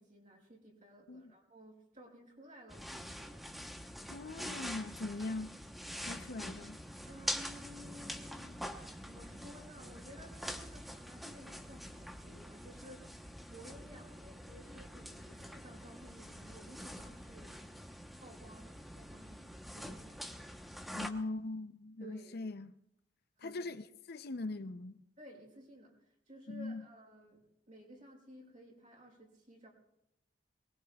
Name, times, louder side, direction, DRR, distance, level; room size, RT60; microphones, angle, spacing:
voice 1, 0.0-3.4 7.0-8.5 9.0-17.6 18.2-20.5 22.0-22.5 23.4-23.7 25.2-29.7, equal, 45° right, 5.7 m, -55 dB
sound 1, 2.7-21.1, equal, ahead, 1.0 m, -45 dB
voice 2, 4.1-5.6 6.0-6.8 20.9-22.8 23.4-25.0 26.5-26.8, left 2 dB, 60° left, 0.6 m, -41 dB
23.5 x 21.0 x 2.4 m
head